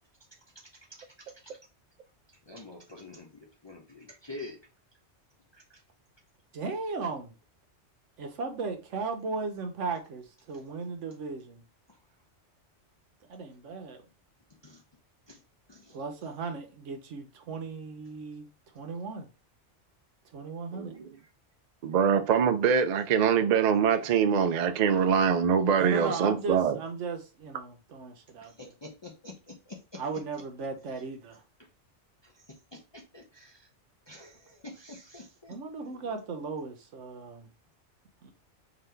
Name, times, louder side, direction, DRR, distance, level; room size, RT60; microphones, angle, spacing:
voice 1, 2.5-4.6 14.6-14.8 15.3-15.4 15.7-16.0 28.4-30.0 32.2-33.6 34.1-35.6, left 2 dB, 40° left, 0.4 m, -46 dB
voice 2, 6.5-7.3 8.2-11.6 13.3-14.0 15.9-18.5 18.7-19.3 20.3-20.9 25.8-28.7 29.9-31.4 35.5-37.5 38.2-38.3, right 4 dB, 85° right, 1.2 m, -36 dB
voice 3, 21.8-26.8, right 7 dB, 60° right, 0.4 m, -24 dB
4.0 x 2.7 x 3.2 m
omnidirectional pair, 1.2 m